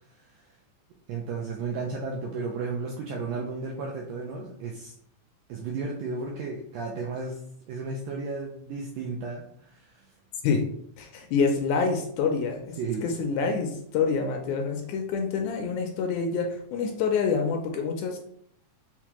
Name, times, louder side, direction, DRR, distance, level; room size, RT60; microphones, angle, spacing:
voice 1, 1.1-4.9 5.5-7.4 7.7-10.1 12.8-13.0, right 4 dB, 85° right, 0 dB, 1.5 m, -33 dB
voice 2, 11.0-18.2, left 5 dB, 80° left, 3 dB, 1.8 m, -27 dB
5.7 x 2.2 x 2.9 m, 0.69 s
omnidirectional pair, 3.5 m